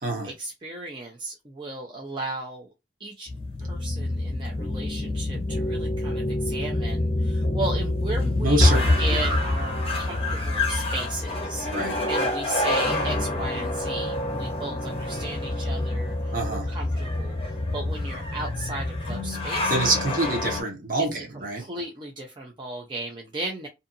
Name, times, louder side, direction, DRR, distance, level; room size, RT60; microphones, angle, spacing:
voice 1, 0.2-2.7 3.0-3.3 3.6-11.7 12.1-20.0 21.0-23.7, right 2 dB, 25° right, 0.5 m, -35 dB
sound 1, 3.3-20.6, left 2 dB, 30° left, 0.6 m, -26 dB
voice 2, 8.4-9.2 11.7-12.0 16.3-16.7 19.7-21.6, right 2 dB, 50° right, 1.0 m, -26 dB
2.7 x 2.5 x 2.6 m
head